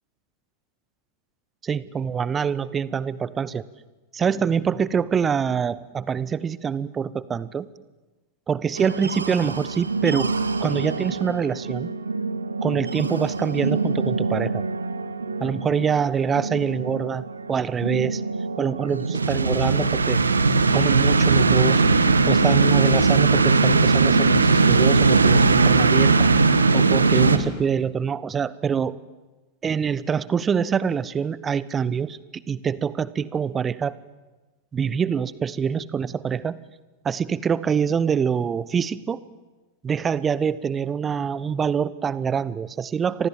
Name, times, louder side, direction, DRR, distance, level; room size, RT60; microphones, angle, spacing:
voice 1, 1.6-3.6 4.1-7.7 8.5-10.3 10.6-11.9 12.6-14.7 15.4-18.2 18.6-20.2 20.7-21.8 22.3-26.3 26.7-29.0 29.6-34.0 34.7-36.6 37.0-39.2 39.8-43.3, right 7 dB, 20° right, 19 dB, 0.9 m, -25 dB
sound 1, 8.8-27.4, right 4 dB, 75° right, 1.6 m, -21 dB
29.5 x 25.5 x 7.6 m, 1.2 s
figure-of-eight pair, 90°, 0 cm